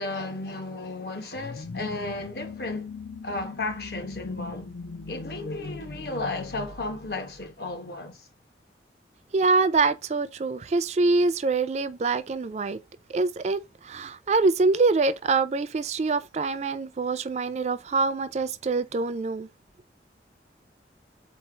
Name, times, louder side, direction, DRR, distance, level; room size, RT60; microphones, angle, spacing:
voice 1, 0.0-2.9 3.2-4.7 5.1-8.3, left 2 dB, 60° left, 1.1 m, -34 dB
sound 1, 1.3-7.8, left 3 dB, 75° left, 0.6 m, -40 dB
voice 2, 9.3-12.8 13.1-19.5, right 3 dB, 40° right, 0.3 m, -25 dB
4.3 x 2.3 x 4.5 m
head